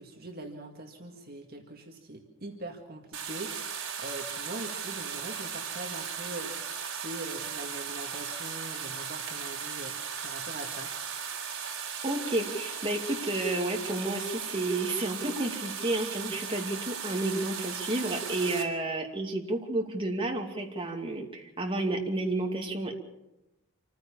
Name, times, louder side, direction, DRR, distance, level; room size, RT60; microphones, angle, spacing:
voice 1, 0.0-10.9 18.5-18.6, right 2 dB, 50° right, 2 dB, 2.0 m, -42 dB
sound 1, 3.1-18.6, right 7 dB, 75° right, 3.9 m, -37 dB
voice 2, 12.0-22.9, right 2 dB, 25° right, 1 dB, 2.7 m, -31 dB
26.5 x 15.5 x 7.2 m, 0.94 s
head